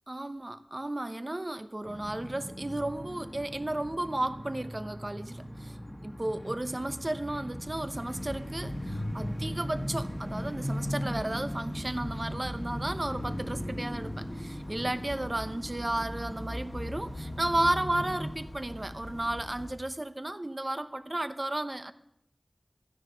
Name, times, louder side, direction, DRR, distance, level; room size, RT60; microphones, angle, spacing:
voice 1, 0.1-5.8 6.0-21.9, right 1 dB, 40° right, 10 dB, 0.9 m, -33 dB
sound 1, 1.8-18.3, equal, 15° left, 1.6 m, -38 dB
sound 2, 7.6-19.7, equal, 50° left, 1.7 m, -43 dB
13.5 x 10.0 x 6.3 m, 0.74 s
wide cardioid pair, 50°, 0 cm